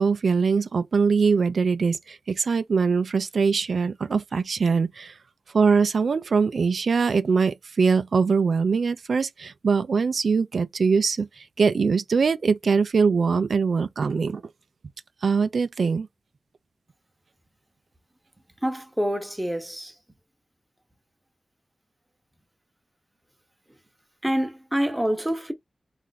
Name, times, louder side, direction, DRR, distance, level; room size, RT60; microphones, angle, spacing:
voice 1, 0.0-5.2 5.5-14.4 15.2-16.1, right 5 dB, 75° right, 0.3 m, -22 dB
voice 2, 18.6-19.9 24.2-25.5, equal, 10° right, 0.7 m, -26 dB
4.2 x 2.5 x 3.9 m
wide cardioid pair, 130°, 0 cm